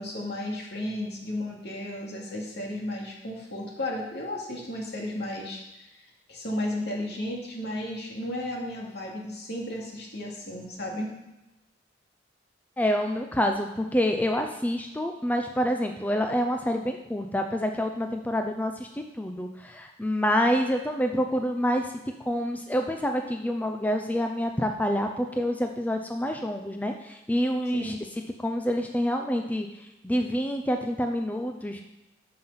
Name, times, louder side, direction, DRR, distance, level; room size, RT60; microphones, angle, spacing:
voice 1, 0.0-5.9 6.3-11.1 27.7-28.0, left 1 dB, 60° left, -1 dB, 2.6 m, -34 dB
voice 2, 12.8-21.9 22.3-27.9 28.4-29.7 30.0-31.8, equal, 10° left, 4 dB, 0.5 m, -27 dB
13.0 x 5.7 x 5.7 m, 0.95 s
head